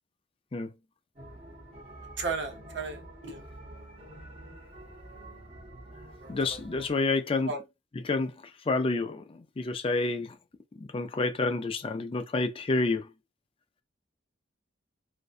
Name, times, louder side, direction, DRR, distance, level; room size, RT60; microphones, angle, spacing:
sound 1, 1.2-6.9, right 1 dB, 30° right, 0.8 m, -47 dB
voice 1, 2.2-3.4 6.2-6.6 7.5-7.6, right 4 dB, 65° right, 0.8 m, -35 dB
voice 2, 6.3-7.5 7.9-8.3 8.7-10.4 10.8-13.1, left 3 dB, 30° left, 0.4 m, -29 dB
2.6 x 2.2 x 2.4 m
head